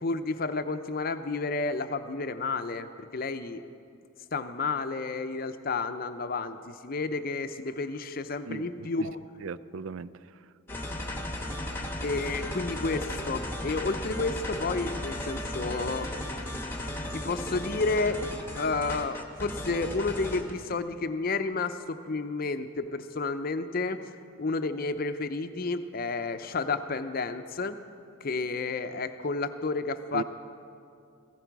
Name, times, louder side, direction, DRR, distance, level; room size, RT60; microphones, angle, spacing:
voice 1, 0.0-2.9 3.1-3.6 4.3-9.2 12.0-16.1 17.1-18.2 18.5-27.8 28.2-30.2, left 3 dB, 45° left, 9 dB, 0.6 m, -31 dB
voice 2, 8.5-8.9 9.4-10.1 30.1-30.2, right 5 dB, 70° right, 16 dB, 0.4 m, -37 dB
sound 1, 10.7-20.5, left 1 dB, 10° left, 1.1 m, -35 dB
15.5 x 15.0 x 4.7 m, 2.4 s
head